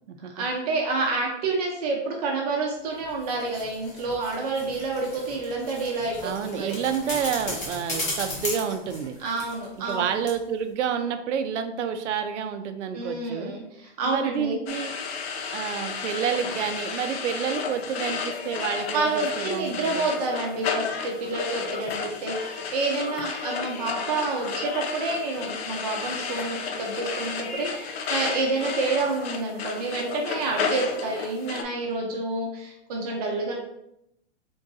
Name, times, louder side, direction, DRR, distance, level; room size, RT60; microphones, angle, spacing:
voice 1, 0.4-6.7 9.2-10.1 12.9-14.6 18.9-33.5, right 3 dB, 35° right, -1 dB, 0.7 m, -28 dB
sound 1, 3.0-10.0 10.3-10.4, left 1 dB, 15° left, 0.3 m, -36 dB
voice 2, 6.2-9.2 9.8-13.5 14.0-14.9 15.5-20.1, right 7 dB, 80° right, 8 dB, 0.6 m, -29 dB
sound 2, 14.7-31.6, left 5 dB, 60° left, 0.6 m, -32 dB
3.8 x 2.6 x 3.7 m, 0.81 s
hypercardioid pair, 165°, 35 cm